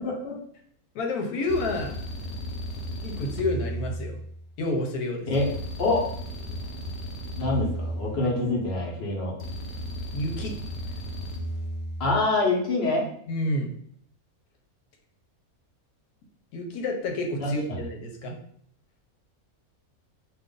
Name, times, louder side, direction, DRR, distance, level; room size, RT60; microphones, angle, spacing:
voice 1, 0.0-0.4 5.3-5.5 5.8-6.1 7.4-9.3 12.0-13.1 17.4-17.5, left 2 dB, 50° left, -2 dB, 1.0 m, -25 dB
voice 2, 0.9-1.9 3.0-4.2 4.6-5.3 8.2-8.3 10.1-10.5 13.3-13.7 16.5-18.4, left 1 dB, 85° left, 2 dB, 1.2 m, -29 dB
sound 1, 1.5-4.6 5.3-8.6 9.4-12.2, equal, 65° left, 0.7 m, -35 dB
2.6 x 2.5 x 3.7 m, 0.63 s
omnidirectional pair, 1.5 m